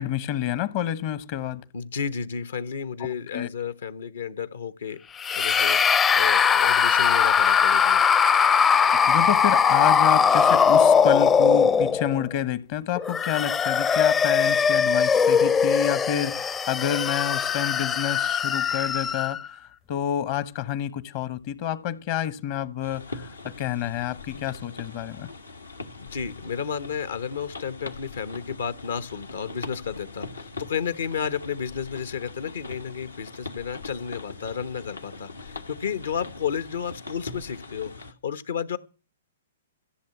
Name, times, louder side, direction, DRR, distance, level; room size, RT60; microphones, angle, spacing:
voice 1, 0.0-1.6 3.3-3.5 9.0-19.4 19.9-25.3, left 10 dB, 45° left, 1.0 m, -28 dB
voice 2, 1.7-5.0 5.3-5.8 6.1-8.0 26.0-38.8, left 7 dB, 70° left, 1.1 m, -32 dB
sound 1, 5.2-12.3 13.0-19.5, left 6 dB, 20° left, 0.6 m, -20 dB
sound 2, 22.8-38.1, left 3 dB, 90° left, 1.8 m, -41 dB
14.5 x 6.9 x 9.5 m
figure-of-eight pair, 115°, 0 cm